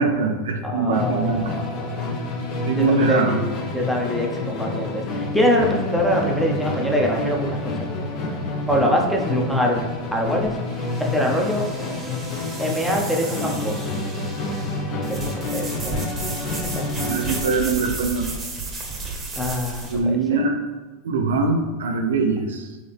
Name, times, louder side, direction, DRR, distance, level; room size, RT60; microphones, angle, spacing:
voice 1, 0.0-1.5 2.7-3.4 17.1-18.3 19.9-20.6 21.0-22.7, right 4 dB, 85° right, 4 dB, 0.5 m, -22 dB
voice 2, 0.6-2.1 2.8-3.4 3.7-7.9 8.7-9.8 10.1-10.6 11.0-11.7 12.6-13.9 15.0-16.0 16.7-16.9 19.4-20.1, equal, ahead, -1 dB, 0.7 m, -24 dB
Musical instrument, 0.9-17.6, left 2 dB, 50° left, 0.8 m, -28 dB
sound 1, 9.6-20.0, right 3 dB, 20° right, 0.9 m, -34 dB
4.0 x 2.9 x 3.4 m, 1.3 s
hypercardioid pair, 110°, 0 cm